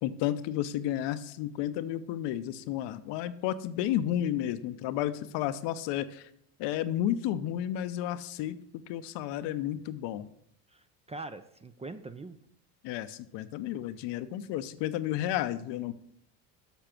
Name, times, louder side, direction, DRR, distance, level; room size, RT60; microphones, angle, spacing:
voice 1, 0.0-6.3 6.6-8.6 8.9-10.3 12.8-15.9, left 12 dB, 65° left, 13 dB, 0.7 m, -32 dB
voice 2, 10.7-12.4, right 2 dB, 15° right, 10 dB, 0.4 m, -43 dB
7.1 x 6.5 x 5.9 m, 0.73 s
supercardioid pair, 90°, 45 cm